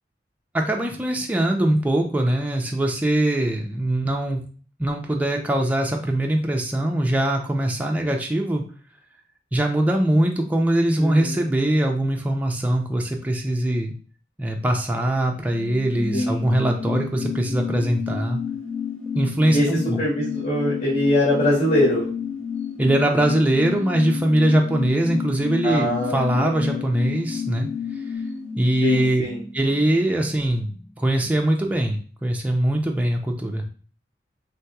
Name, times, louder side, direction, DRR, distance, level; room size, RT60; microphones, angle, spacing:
voice 1, 0.5-4.4 4.8-8.6 9.5-14.0 14.4-18.4 19.1-20.0 22.8-27.7 28.6-29.2 29.5-33.6, right 1 dB, 10° right, 1 dB, 0.3 m, -22 dB
voice 2, 11.0-11.4 16.1-16.5 19.5-19.7 20.0-22.1 25.6-26.9 28.8-29.4, left 1 dB, 40° left, -7 dB, 1.1 m, -23 dB
sound 1, 15.4-30.5 30.8-30.9, left 6 dB, 5° left, 0.9 m, -31 dB
3.1 x 2.8 x 2.2 m, 0.41 s
head